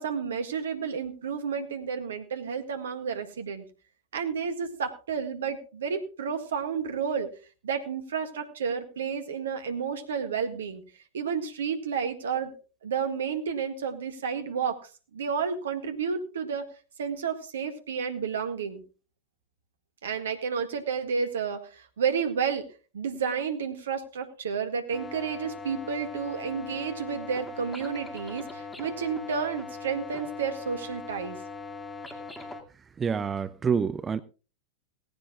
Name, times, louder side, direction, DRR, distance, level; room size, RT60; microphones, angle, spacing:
voice 1, 0.0-3.7 4.1-7.3 7.6-10.8 11.1-12.5 12.8-14.8 15.1-16.7 17.0-18.8 20.0-22.7 22.9-31.4, right 6 dB, 65° right, 1.8 m, -31 dB
sound 1, 24.9-32.6, left 3 dB, 10° left, 2.3 m, -40 dB
voice 2, 33.0-34.2, right 6 dB, 20° right, 0.6 m, -27 dB
18.0 x 15.5 x 2.4 m
figure-of-eight pair, 90°, 0 cm